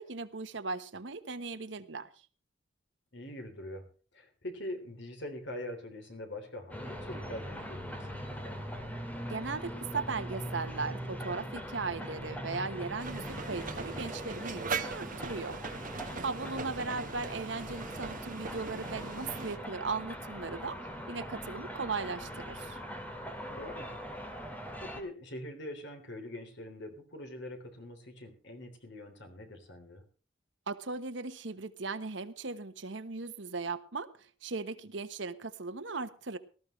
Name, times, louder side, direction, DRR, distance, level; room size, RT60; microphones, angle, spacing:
voice 1, 0.0-2.1 9.3-15.6 16.2-20.8 21.1-22.8 30.7-36.4, right 4 dB, 70° right, 11 dB, 1.2 m, -38 dB
voice 2, 3.1-3.8 4.1-8.6 16.4-16.7 23.5-23.9 24.5-30.0, left 1 dB, 65° left, 5 dB, 3.5 m, -44 dB
sound 1, 6.7-25.0, equal, 10° left, 2.3 m, -41 dB
sound 2, 13.0-19.6, right 4 dB, 45° right, 1.3 m, -40 dB
19.0 x 13.5 x 3.2 m, 0.38 s
head